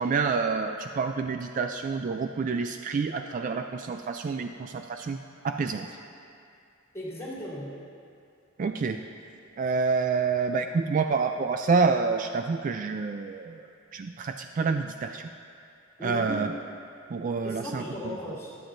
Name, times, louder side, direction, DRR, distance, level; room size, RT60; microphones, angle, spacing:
voice 1, 0.0-5.2 5.4-6.0 8.6-9.0 9.6-13.7 13.9-15.3 16.0-16.5 17.1-18.2, right 4 dB, 40° right, 6 dB, 0.3 m, -28 dB
voice 2, 6.9-7.8 16.0-16.5 17.4-18.6, equal, 15° left, -7 dB, 2.7 m, -36 dB
23.0 x 7.7 x 2.6 m, 2.5 s
head